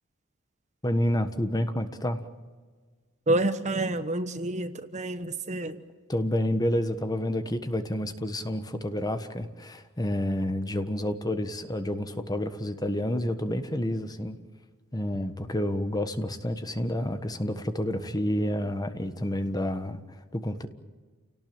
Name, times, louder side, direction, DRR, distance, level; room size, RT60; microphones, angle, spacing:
voice 1, 0.8-2.2 6.1-14.4 14.9-20.7, left 1 dB, 15° left, 9 dB, 1.4 m, -29 dB
voice 2, 3.3-5.8, right 2 dB, 35° right, 10 dB, 1.1 m, -28 dB
29.0 x 18.5 x 8.9 m, 1.5 s
head